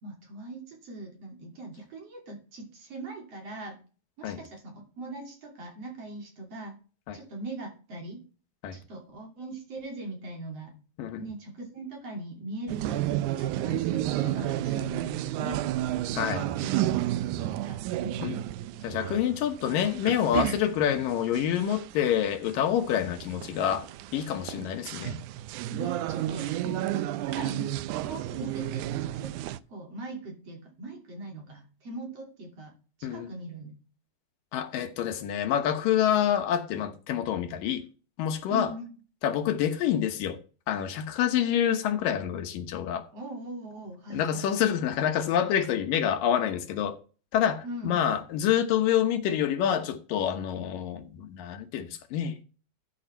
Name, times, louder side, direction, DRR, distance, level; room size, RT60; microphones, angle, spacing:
voice 1, 0.0-3.8 4.2-6.7 7.1-8.2 8.7-10.8 11.2-13.1 13.4-15.7 16.6-18.4 25.7-27.7 28.0-33.7 38.5-38.9 43.1-44.5 47.6-48.2, right 2 dB, 45° right, 3.6 m, -40 dB
sound 1, 12.7-29.6, right 14 dB, 80° right, 1.8 m, -32 dB
voice 2, 16.1-16.5 18.2-18.4 18.8-23.9 24.1-25.2 33.0-33.3 34.5-37.8 38.2-38.7 39.2-40.4 40.7-43.1 44.1-47.0 47.3-52.4, left 10 dB, 75° left, 2.7 m, -27 dB
13.0 x 6.1 x 4.5 m
omnidirectional pair, 4.0 m